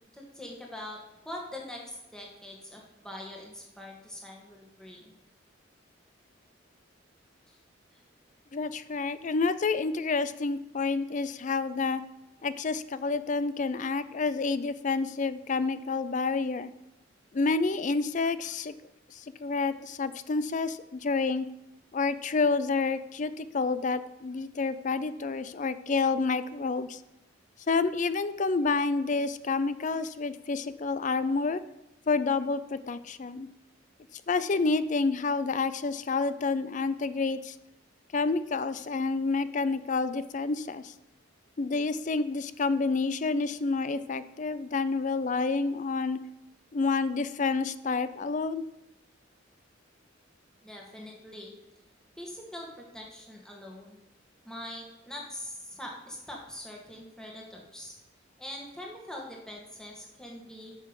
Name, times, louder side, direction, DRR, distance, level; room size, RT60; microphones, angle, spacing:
voice 1, 0.1-1.0 1.2-5.1 7.5-7.6 7.9-8.0 50.6-51.5 52.2-52.7 52.9-54.0 54.4-57.9 58.4-60.8, left 1 dB, 5° left, -2 dB, 1.7 m, -43 dB
voice 2, 8.5-12.0 12.4-16.7 17.3-18.7 19.1-21.5 21.9-27.0 27.7-31.6 32.1-33.5 34.3-37.6 38.1-40.9 41.6-46.2 46.7-48.6, left 4 dB, 40° left, 14 dB, 0.4 m, -29 dB
9.2 x 6.7 x 5.3 m, 0.90 s
head